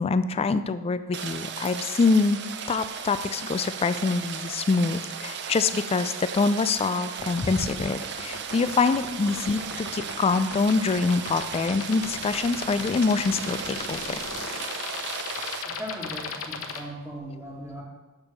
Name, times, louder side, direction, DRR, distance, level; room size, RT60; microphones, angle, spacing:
voice 1, 0.0-2.4 2.7-14.2, left 4 dB, 25° left, 13 dB, 0.3 m, -25 dB
Rain, 1.1-15.6, right 7 dB, 50° right, 0.5 m, -36 dB
sound 1, 7.2-16.8, left 5 dB, 65° left, 0.8 m, -36 dB
voice 2, 15.6-17.8, equal, 10° right, -8 dB, 1.4 m, -38 dB
6.7 x 5.4 x 5.9 m, 1.2 s
head